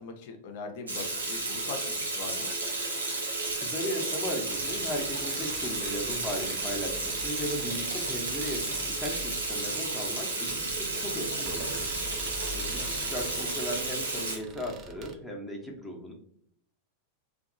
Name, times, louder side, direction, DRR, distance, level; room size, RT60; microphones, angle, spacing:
voice 1, 0.0-2.5 11.0-11.7 12.7-12.9, left 4 dB, 50° left, 5 dB, 0.5 m, -42 dB
Water tap faucet / Sink (filling or washing), 0.9-14.4, right 2 dB, 75° right, 0.7 m, -32 dB
voice 2, 3.6-12.0 12.5-16.1, equal, 5° left, -1 dB, 0.7 m, -37 dB
sound 1, 4.5-15.2, right 3 dB, 30° right, 0.4 m, -44 dB
2.7 x 2.3 x 2.5 m, 0.67 s
figure-of-eight pair, 90°, 0 cm